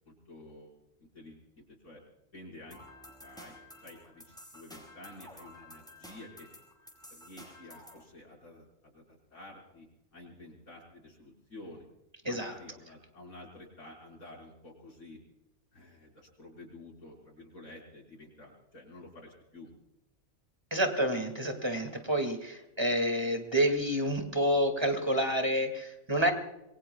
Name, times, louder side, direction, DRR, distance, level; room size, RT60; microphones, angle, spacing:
voice 1, 0.1-2.0 2.3-2.8 3.2-3.5 3.8-6.5 7.1-9.9 10.1-11.9 12.2-15.2 15.7-19.7, left 1 dB, 90° left, -3 dB, 5.6 m, -51 dB
sound 1, 2.7-8.0, left 1 dB, 5° left, 4.9 m, -52 dB
voice 2, 20.7-26.3, equal, 20° right, 5 dB, 2.2 m, -29 dB
26.5 x 22.5 x 2.3 m, 0.91 s
omnidirectional pair, 1.5 m